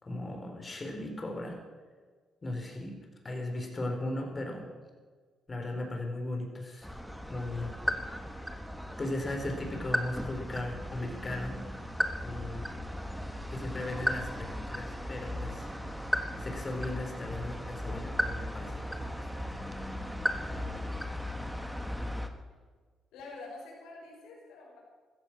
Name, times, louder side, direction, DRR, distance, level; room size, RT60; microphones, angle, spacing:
voice 1, 0.0-1.6 2.4-3.0 3.2-4.7 5.5-6.9 7.3-7.8 8.1-8.4 9.0-11.6 12.2-12.6 13.5-20.0 20.5-21.2, left 1 dB, 30° left, 2 dB, 4.4 m, -37 dB
sound 1, 6.8-22.3, equal, ahead, 1.5 m, -36 dB
voice 2, 12.3-12.7 23.1-24.8, left 3 dB, 90° left, -2 dB, 5.5 m, -47 dB
15.5 x 14.5 x 6.1 m, 1.5 s
cardioid pair, 90°, 0 cm